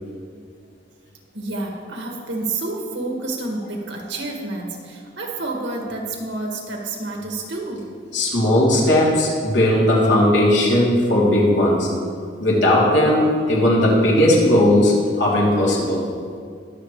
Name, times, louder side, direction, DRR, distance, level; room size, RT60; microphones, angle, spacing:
voice 1, 1.3-7.9, right 2 dB, 90° right, 0 dB, 2.0 m, -29 dB
voice 2, 8.1-11.9 12.4-16.0, left 1 dB, 85° left, -6 dB, 3.2 m, -17 dB
21.0 x 7.3 x 3.3 m, 2.1 s
head